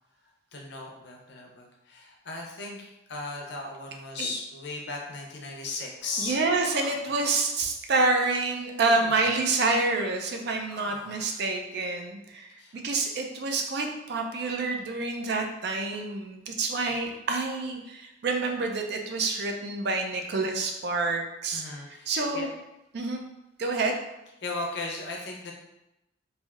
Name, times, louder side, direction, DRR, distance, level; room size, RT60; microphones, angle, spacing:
voice 1, 0.5-6.4 12.6-12.8 21.5-22.5 24.4-25.5, left 3 dB, 55° left, 0 dB, 0.6 m, -36 dB
Human voice, 6.0-7.5 8.5-9.3 10.3-11.4, equal, 5° right, 0.6 m, -47 dB
voice 2, 6.2-21.6 22.1-22.5 22.9-23.2 23.6-23.9, right 3 dB, 55° right, 3 dB, 0.4 m, -28 dB
3.3 x 2.6 x 2.4 m, 0.92 s
head